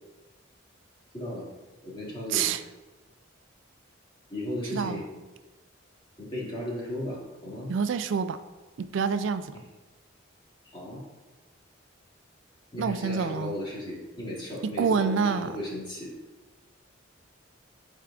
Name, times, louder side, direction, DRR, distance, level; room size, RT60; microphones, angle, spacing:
voice 1, 1.1-1.5 1.8-2.5 4.3-5.2 6.2-7.7 10.7-11.0 12.7-16.1, left 1 dB, 25° left, -6 dB, 2.2 m, -35 dB
voice 2, 2.3-2.6 4.7-5.0 7.7-8.4 8.8-9.5 12.8-13.6 14.8-15.5, right 6 dB, 70° right, 10 dB, 0.3 m, -27 dB
11.5 x 4.6 x 2.5 m, 1.2 s
head